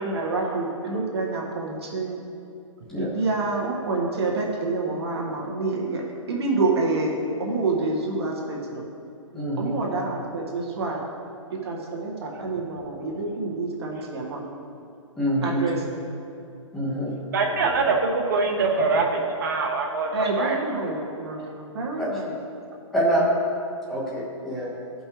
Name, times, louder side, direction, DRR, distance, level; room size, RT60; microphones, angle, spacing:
voice 1, 0.0-2.2 2.9-6.0 6.3-7.1 7.4-8.8 9.6-11.0 11.6-14.4 15.4-15.8 20.1-22.3, right 3 dB, 55° right, -2 dB, 1.4 m, -27 dB
voice 2, 9.3-9.8 15.2-15.7 16.7-17.1 22.0-22.1 22.9-23.3 23.9-24.7, right 1 dB, ahead, -6 dB, 0.3 m, -25 dB
voice 3, 17.3-20.1 20.4-20.6, right 4 dB, 40° right, 1 dB, 1.0 m, -23 dB
13.0 x 5.4 x 3.1 m, 2.6 s
hypercardioid pair, 175°, 17 cm